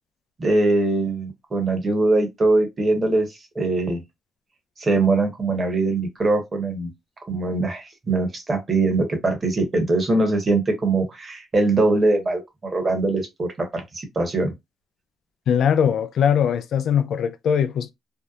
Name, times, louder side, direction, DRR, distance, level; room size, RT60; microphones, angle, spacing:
voice 1, 0.4-3.3 3.5-4.0 4.8-6.9 7.3-12.4 12.7-14.5, right 2 dB, 35° right, 1.0 m, -22 dB
voice 2, 15.5-17.9, left 8 dB, 70° left, 0.3 m, -21 dB
2.7 x 2.1 x 2.3 m
cardioid pair, 90°, 0 cm